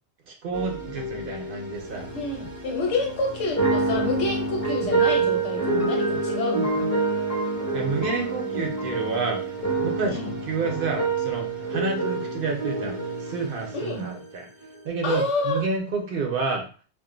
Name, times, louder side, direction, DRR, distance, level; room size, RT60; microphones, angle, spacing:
voice 1, 0.2-2.1 7.7-14.5 14.8-16.7, right 4 dB, 60° right, 2 dB, 0.7 m, -29 dB
sound 1, 0.5-14.3 14.6-14.8, right 3 dB, 15° left, 0.6 m, -27 dB
voice 2, 2.1-7.0 10.1-10.3 13.7-14.1 15.0-15.6, left 2 dB, 90° left, 1 dB, 1.2 m, -28 dB
2.4 x 2.2 x 3.7 m, 0.37 s
omnidirectional pair, 1.2 m